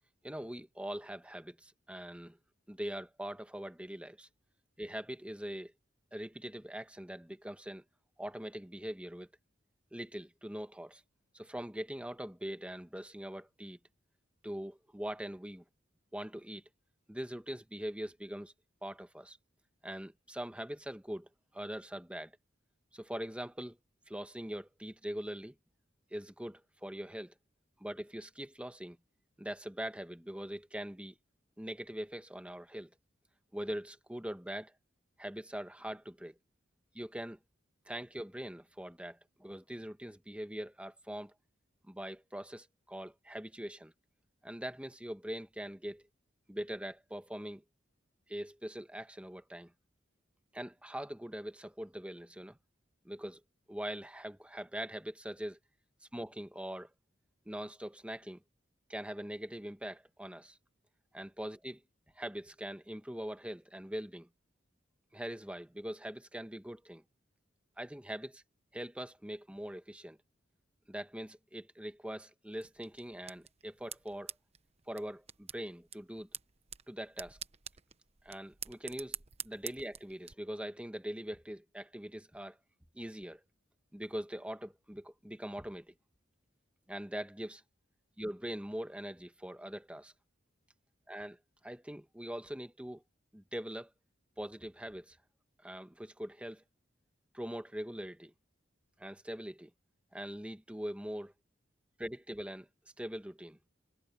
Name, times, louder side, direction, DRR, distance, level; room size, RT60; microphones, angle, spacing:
voice 1, 0.2-2.4 2.7-4.3 4.8-5.7 6.1-7.8 8.2-9.3 9.9-11.0 11.3-13.8 14.4-15.6 16.1-16.6 17.1-18.5 18.8-19.4 19.8-21.3 21.5-22.3 22.9-23.8 24.1-25.5 26.1-27.3 27.8-29.0 29.4-31.2 31.6-32.9 33.5-34.7 35.2-36.4 36.9-37.4 37.9-41.3 41.9-43.9 44.4-46.0 46.5-47.6 48.3-49.7 50.5-52.6 53.0-53.4 53.7-55.6 56.1-56.9 57.5-58.4 58.9-60.6 61.1-61.8 62.1-64.3 65.1-67.0 67.8-68.4 68.7-70.2 70.9-74.3 74.9-76.3 76.9-77.4 78.2-79.2 79.4-82.6 82.9-83.4 83.9-85.9 86.9-87.6 88.2-90.1 91.1-91.4 91.6-93.0 93.3-93.9 94.4-95.2 95.6-96.6 97.3-98.3 99.0-99.7 100.1-101.3 102.0-102.7 103.0-103.6, equal, 5° right, 1.3 m, -42 dB
sound 1, 72.6-80.3, right 9 dB, 35° right, 1.0 m, -48 dB
head